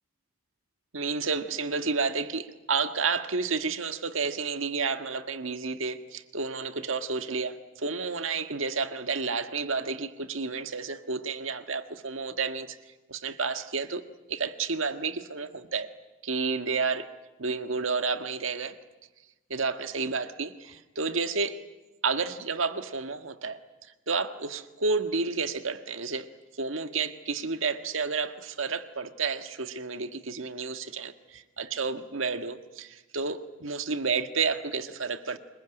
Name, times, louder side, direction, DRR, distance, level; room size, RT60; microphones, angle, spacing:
voice 1, 0.9-12.8 13.1-14.0 14.3-15.9 16.2-17.1 17.4-18.8 19.5-21.6 22.0-23.6 24.1-26.3 26.6-35.4, right 4 dB, 75° right, 8 dB, 1.6 m, -31 dB
26.0 x 22.0 x 10.0 m, 1.1 s
head